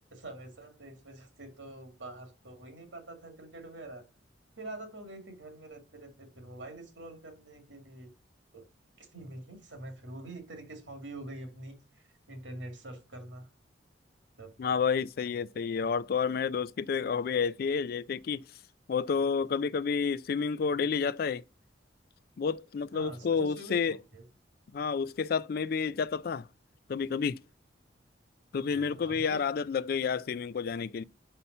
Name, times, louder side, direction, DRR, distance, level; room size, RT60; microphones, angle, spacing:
voice 1, 0.0-4.0 4.6-8.1 8.5-8.6 9.0-13.5 14.4-14.5 22.9-24.2 28.7-29.4, right 2 dB, 85° right, 2.5 m, -45 dB
voice 2, 14.6-18.4 18.9-21.4 22.4-24.0 24.7-26.5 26.9-27.4 28.5-31.0, left 6 dB, 50° left, 0.3 m, -30 dB
5.7 x 5.6 x 5.3 m
head